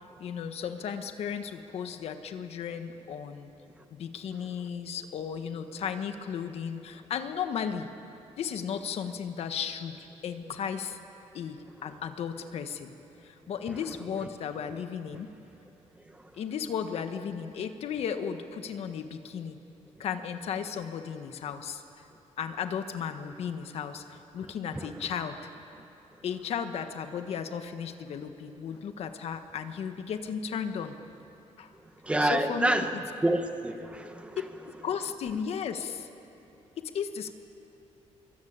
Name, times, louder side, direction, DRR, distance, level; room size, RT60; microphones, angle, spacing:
voice 1, 0.2-3.5 3.9-7.9 8.4-11.0 11.3-12.9 13.2-15.3 16.3-19.6 20.0-21.8 22.4-25.5 26.2-31.0 31.6-31.7 32.2-33.0 34.6-36.1 36.8-37.3, left 7 dB, 60° left, 8 dB, 1.4 m, -35 dB
voice 2, 32.0-32.9 33.2-34.4, right 1 dB, 10° right, 7 dB, 1.3 m, -27 dB
25.5 x 23.5 x 8.8 m, 2.9 s
cardioid pair, 160°, 12 cm